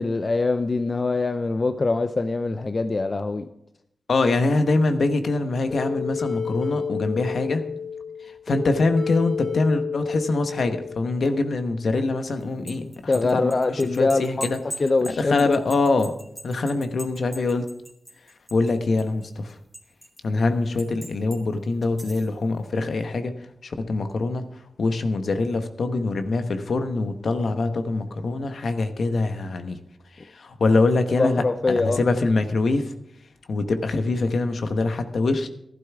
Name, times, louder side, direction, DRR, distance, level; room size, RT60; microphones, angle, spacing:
voice 1, 0.0-3.5 12.8-14.5 14.8-15.6 31.2-32.0, left 3 dB, 40° left, 0.5 m, -23 dB
voice 2, 4.1-7.6 8.5-14.6 15.2-16.1 16.4-17.7 18.5-19.5 20.2-23.3 23.6-24.4 24.8-29.8 30.2-32.9 33.5-35.5, left 3 dB, 70° left, 1.1 m, -24 dB
sound 1, 5.7-11.3, left 6 dB, 25° left, 1.5 m, -31 dB
sound 2, 12.4-18.7 19.0-20.2 20.8-21.4 21.8-22.3, right 1 dB, 5° right, 2.7 m, -40 dB
15.0 x 11.5 x 3.6 m
wide cardioid pair, 80°, 0 cm